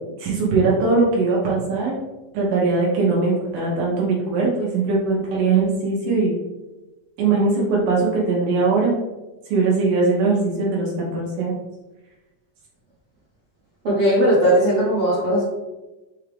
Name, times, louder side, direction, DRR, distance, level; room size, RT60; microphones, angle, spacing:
voice 1, 0.2-2.0 2.3-6.4 7.2-8.9 9.5-11.6, right 3 dB, 80° right, -4 dB, 2.6 m, -20 dB
voice 2, 13.8-15.5, equal, 60° right, -10 dB, 1.5 m, -18 dB
6.6 x 2.4 x 3.3 m, 1.1 s
omnidirectional pair, 4.3 m